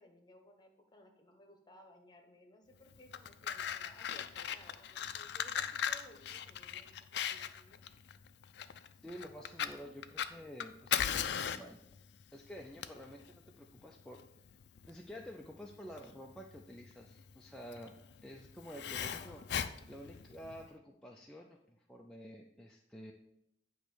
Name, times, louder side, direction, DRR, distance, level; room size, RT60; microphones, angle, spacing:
voice 1, 0.0-7.8 18.9-19.5, left 1 dB, 25° left, 3 dB, 1.1 m, -60 dB
Fire, 2.9-20.7, left 9 dB, 65° left, 0.4 m, -39 dB
voice 2, 9.0-11.8 12.3-14.2 14.9-18.0 18.2-19.4 19.9-23.1, equal, 5° left, -1 dB, 0.4 m, -50 dB
8.5 x 3.1 x 6.2 m, 0.79 s
head